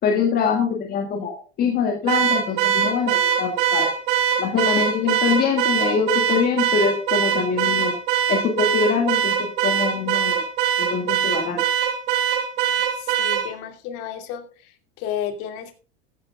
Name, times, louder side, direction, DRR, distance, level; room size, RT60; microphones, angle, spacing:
voice 1, 0.0-3.9 4.4-7.9 8.3-10.4 10.8-11.6, left 6 dB, 30° left, 3 dB, 1.8 m, -23 dB
Car / Alarm, 2.1-13.5, right 9 dB, 45° right, 2.6 m, -22 dB
voice 2, 12.8-15.7, left 9 dB, 50° left, 6 dB, 2.8 m, -33 dB
15.5 x 14.0 x 2.3 m, 0.37 s
supercardioid pair, 155°, 33 cm